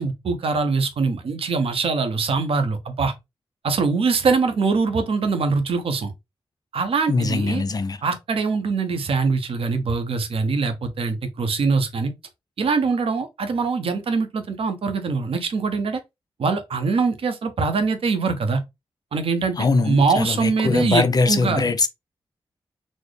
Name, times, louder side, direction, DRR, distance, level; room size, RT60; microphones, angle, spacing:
voice 1, 0.0-3.1 3.6-6.1 6.7-7.6 8.0-12.1 12.6-16.0 16.4-18.6 19.1-21.6, right 4 dB, 75° right, 0.7 m, -23 dB
voice 2, 7.1-8.0 19.6-21.9, left 4 dB, 40° left, 0.5 m, -21 dB
4.2 x 2.0 x 3.1 m
cardioid pair, 75°, 10 cm